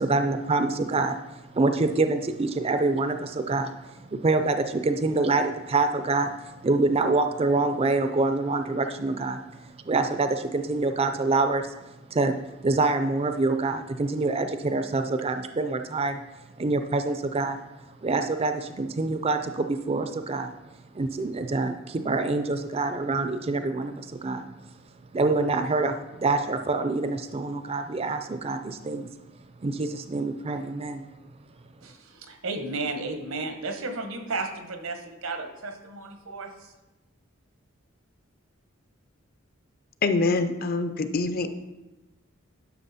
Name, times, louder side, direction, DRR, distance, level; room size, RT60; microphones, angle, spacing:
voice 1, 0.0-9.6 9.8-11.7 12.1-12.4 12.6-16.2 16.6-17.6 18.0-20.5 20.9-24.4 25.1-25.9 26.2-29.1 29.6-31.1, right 3 dB, 30° right, 8 dB, 0.4 m, -26 dB
voice 2, 31.8-36.7, right 3 dB, 85° right, 6 dB, 1.2 m, -33 dB
voice 3, 40.0-41.5, left 3 dB, 45° left, 9 dB, 0.6 m, -25 dB
11.0 x 6.1 x 4.1 m, 1.0 s
head